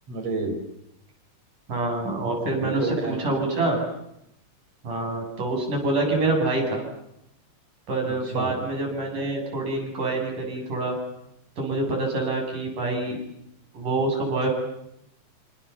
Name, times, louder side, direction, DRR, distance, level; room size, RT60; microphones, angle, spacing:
voice 1, 0.1-0.6 2.6-3.2 8.1-8.5, right 3 dB, 50° right, 5 dB, 6.7 m, -30 dB
voice 2, 1.7-3.8 4.8-6.8 7.9-11.0 11.6-13.2 13.7-14.5, right 2 dB, 80° right, 1 dB, 9.7 m, -26 dB
28.0 x 27.5 x 7.2 m, 0.78 s
omnidirectional pair, 3.6 m